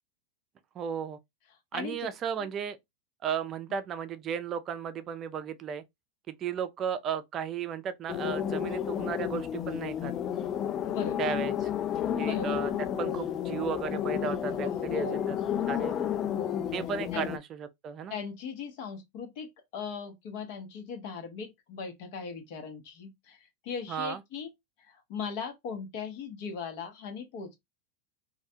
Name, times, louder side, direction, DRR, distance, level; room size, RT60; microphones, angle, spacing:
voice 1, 0.8-1.2 1.7-2.8 3.2-5.8 6.3-10.1 11.2-11.7 12.2-12.7 13.0-15.4 15.7-15.9 16.7-18.2 23.9-24.2, right 7 dB, 35° right, 0.4 m, -34 dB
voice 2, 1.7-2.1 2.4-2.5 3.7-3.8 10.8-11.3 12.2-12.6 14.5-16.6 17.1-17.3 18.1-24.5 24.8-27.6, left 5 dB, 60° left, 0.9 m, -39 dB
sound 1, 8.1-17.4, left 10 dB, 35° left, 0.3 m, -31 dB
2.4 x 2.1 x 2.7 m
hypercardioid pair, 110°, 0 cm